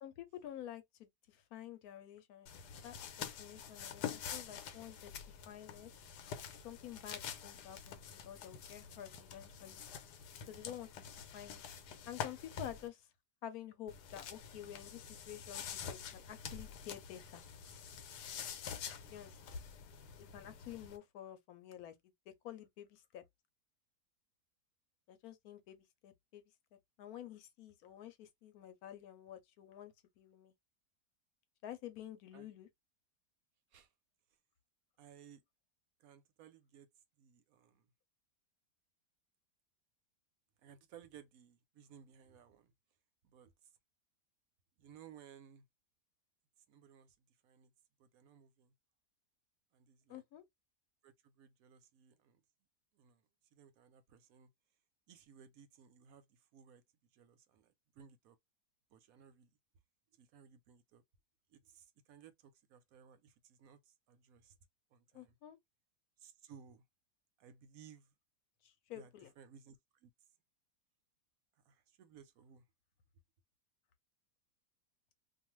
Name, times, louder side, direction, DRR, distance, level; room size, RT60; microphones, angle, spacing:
voice 1, 0.0-5.9 6.6-9.8 10.5-11.1 11.3-11.6 12.1-13.0 13.4-17.4 19.1-19.6 20.2-21.9 22.4-23.2 25.1-26.4 27.0-30.5 31.6-32.7 50.1-50.4 65.1-65.6 68.6-69.3, left 11 dB, 70° left, 1.0 m, -50 dB
sound 1, 2.5-12.9 13.9-21.0, left 8 dB, 90° left, 1.2 m, -47 dB
voice 2, 35.0-35.4 36.0-36.9 37.2-37.9 40.6-42.7 43.2-43.5 44.8-45.6 46.7-47.2 47.4-47.7 48.0-48.7 49.7-50.2 51.0-52.4 52.9-53.2 53.5-54.5 55.1-56.8 57.1-58.4 58.9-59.5 60.1-61.0 61.5-64.5 64.9-65.4 66.2-66.8 67.4-68.1 68.9-69.8 70.0-70.1 71.7-72.6, right 8 dB, 70° right, 0.9 m, -60 dB
2.6 x 2.4 x 3.0 m
omnidirectional pair, 1.7 m